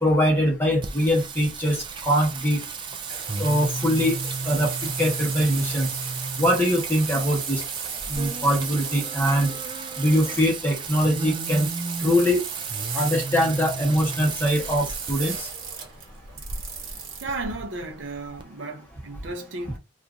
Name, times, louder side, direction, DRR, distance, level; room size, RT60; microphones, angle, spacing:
voice 1, 0.0-2.6 3.4-4.2 4.4-5.9 6.4-7.6 8.1-9.6 10.0-11.7 12.0-12.4 12.9-15.5, equal, 10° left, 1.1 m, -22 dB
Singing, 0.8-18.4, right 4 dB, 25° right, 0.3 m, -34 dB
sound 1, 3.1-17.3, right 6 dB, 85° right, 0.9 m, -36 dB
voice 2, 17.2-19.8, right 2 dB, 70° right, 0.6 m, -34 dB
2.8 x 2.4 x 3.5 m
head